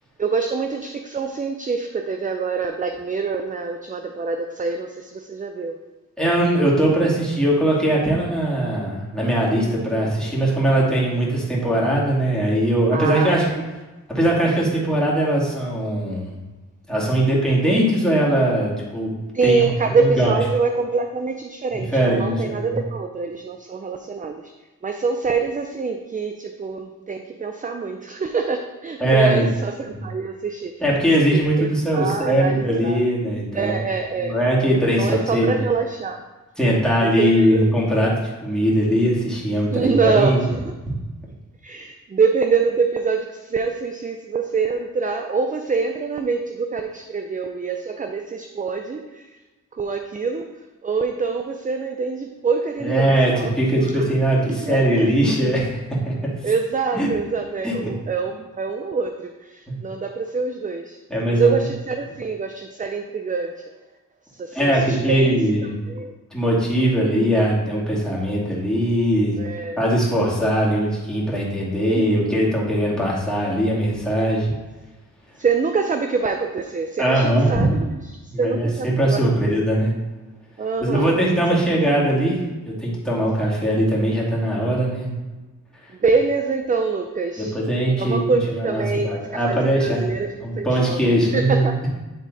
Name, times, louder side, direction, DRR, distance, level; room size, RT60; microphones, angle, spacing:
voice 1, 0.2-5.8 12.9-13.6 19.3-24.5 24.8-30.7 31.3-33.0 33.5-34.4 35.0-36.2 37.0-37.7 39.7-40.7 41.6-49.4 49.7-50.5 50.8-53.5 54.0-54.1 54.5-55.1 56.4-61.0 61.3-63.7 64.3-65.4 65.9-66.1 69.4-69.8 71.8-72.4 75.4-79.2 80.6-81.1 81.8-82.1 85.9-87.6 88.0-91.0 91.3-91.8, right 5 dB, 25° right, 5 dB, 0.4 m, -25 dB
voice 2, 6.2-13.5 14.1-16.3 16.9-19.1 19.4-19.7 20.0-20.3 21.9-22.8 29.0-29.5 30.8-33.8 34.2-35.6 36.6-38.1 38.4-40.4 52.8-55.8 56.1-56.2 56.9-57.1 57.6-57.7 61.1-61.5 64.5-65.8 66.3-69.4 69.8-74.5 77.0-77.6 78.3-79.9 80.8-85.1 87.4-88.2 88.5-90.0 90.4-91.7, right 1 dB, ahead, -6 dB, 2.3 m, -20 dB
9.2 x 3.6 x 4.0 m, 1.2 s
cardioid pair, 85°, 32 cm